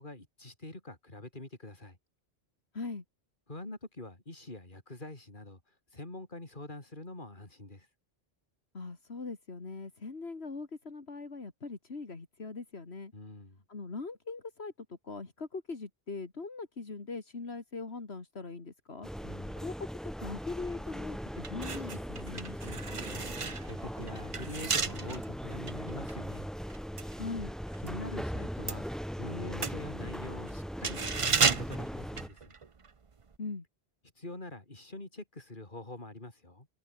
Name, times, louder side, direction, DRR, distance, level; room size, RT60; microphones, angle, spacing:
voice 1, 0.0-2.0 3.5-5.6 5.9-7.9 13.1-13.6 19.2-19.7 22.6-26.5 27.8-28.9 29.2-32.5 34.2-36.7, left 2 dB, 50° left, 4.4 m, -45 dB
voice 2, 8.7-13.1 13.7-19.9 20.2-22.6 27.2-27.6 33.4-33.6, left 3 dB, 80° left, 2.7 m, -41 dB
sound 1, 19.0-32.3, equal, ahead, 6.1 m, -39 dB
sound 2, 21.4-28.0 28.3-32.9 33.2-33.4, right 5 dB, 35° right, 0.8 m, -34 dB
omnidirectional pair, 1.1 m